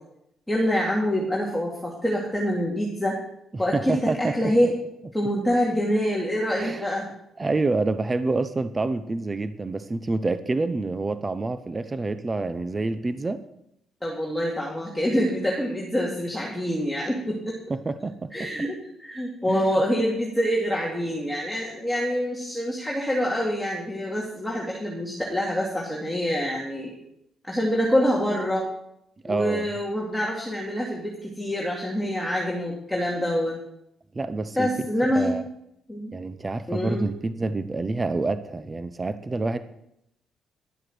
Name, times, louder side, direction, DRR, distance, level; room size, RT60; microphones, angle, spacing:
voice 1, 0.5-3.2 3.6-4.7 5.1-7.1 14.0-17.6 18.3-26.9 27.4-28.7 29.3-33.6 34.6-35.3 35.9-36.1 36.7-37.1, equal, 5° left, -3 dB, 2.5 m, -26 dB
voice 2, 3.5-4.3 6.6-6.8 7.4-13.4 17.7-18.5 19.5-19.7 29.2-29.7 34.1-34.7 35.1-35.4 36.1-39.6, right 3 dB, 25° right, 11 dB, 0.8 m, -27 dB
12.0 x 7.9 x 6.2 m, 0.77 s
cardioid pair, 90°, 0 cm